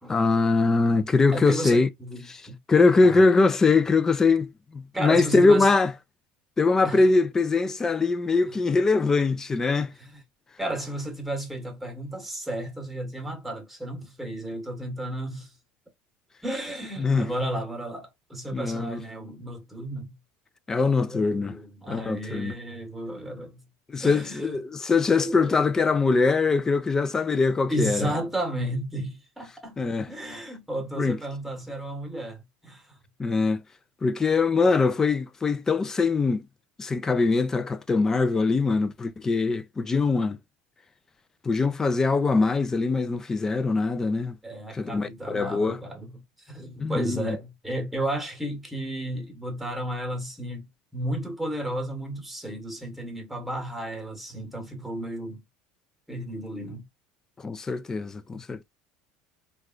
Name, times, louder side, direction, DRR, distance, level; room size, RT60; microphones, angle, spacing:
voice 1, 0.1-1.9 2.3-2.4 2.7-5.9 6.6-9.9 17.0-17.3 18.5-19.0 20.7-21.5 21.9-22.5 23.9-28.1 29.8-30.1 31.0-31.2 33.2-33.6 34.0-36.4 36.8-40.4 41.4-44.3 44.7-45.8 46.8-47.4 57.4-58.6, left 3 dB, 15° left, 0.3 m, -22 dB
voice 2, 1.3-2.6 3.0-3.4 4.9-5.7 6.8-7.0 8.5-8.6 10.0-10.2 10.6-15.5 16.4-20.1 21.1-23.6 24.0-24.6 25.2-25.6 27.7-29.8 30.1-33.0 44.4-55.4 56.1-56.8 58.3-58.4, right 1 dB, 5° right, 1.1 m, -33 dB
3.0 x 2.4 x 2.3 m
cardioid pair, 140°, 3 cm